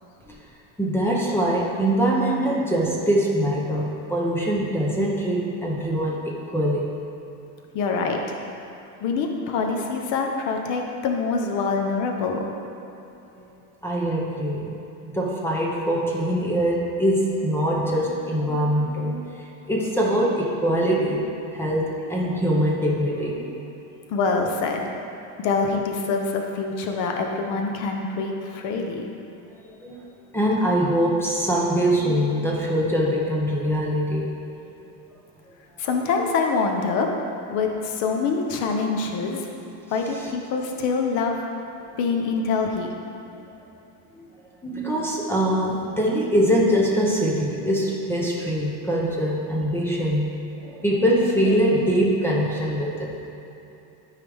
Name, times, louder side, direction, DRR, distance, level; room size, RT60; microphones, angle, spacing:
voice 1, 0.8-6.9 13.8-14.7 15.0-19.3 19.7-21.2 21.5-23.5 29.6-30.0 30.3-34.3 40.1-40.2 43.6-43.7 44.2-44.3 44.6-53.1, equal, 5° left, -4 dB, 0.7 m, -23 dB
voice 2, 7.7-8.2 9.0-12.4 24.1-24.9 25.4-29.0 35.8-37.1 37.5-39.5 39.9-41.4 42.0-42.9, left 4 dB, 50° left, 2 dB, 0.9 m, -25 dB
12.5 x 4.8 x 3.5 m, 2.9 s
cardioid pair, 165°, 40 cm